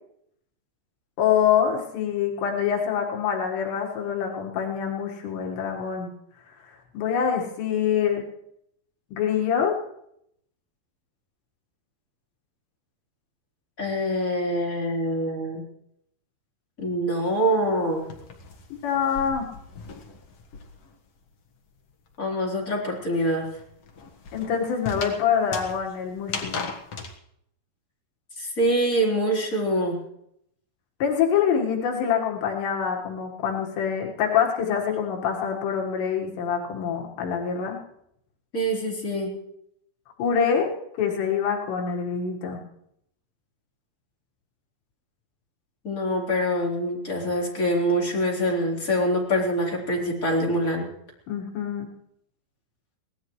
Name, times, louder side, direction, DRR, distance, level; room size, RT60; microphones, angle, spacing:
voice 1, 1.2-6.1 6.6-8.3 9.1-9.8 18.7-19.5 24.3-26.6 31.0-37.8 40.2-42.6 51.3-51.9, left 7 dB, 90° left, 1 dB, 4.0 m, -25 dB
voice 2, 13.8-15.6 16.8-18.1 22.2-23.5 28.4-30.0 38.5-39.3 45.8-50.9, equal, 20° left, -3 dB, 4.0 m, -25 dB
sound 1, 17.3-21.0 21.3-27.1, left 4 dB, 55° left, 1.8 m, -38 dB
24.0 x 18.0 x 3.2 m, 0.75 s
omnidirectional pair, 4.8 m